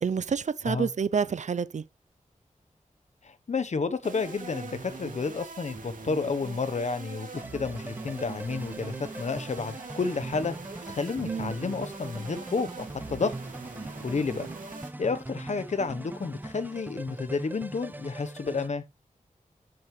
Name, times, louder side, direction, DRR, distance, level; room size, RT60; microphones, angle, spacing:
voice 1, 0.0-1.8 11.2-11.5, right 6 dB, 65° right, 0.6 m, -28 dB
voice 2, 3.2-10.5 10.9-13.3 14.0-14.5 15.0-18.8, left 4 dB, 60° left, 1.0 m, -31 dB
sound 1, 4.0-14.9, right 4 dB, 85° right, 2.5 m, -42 dB
sound 2, 7.3-18.7, right 1 dB, 15° right, 0.6 m, -42 dB
11.0 x 7.9 x 3.3 m
wide cardioid pair, 90°, 13 cm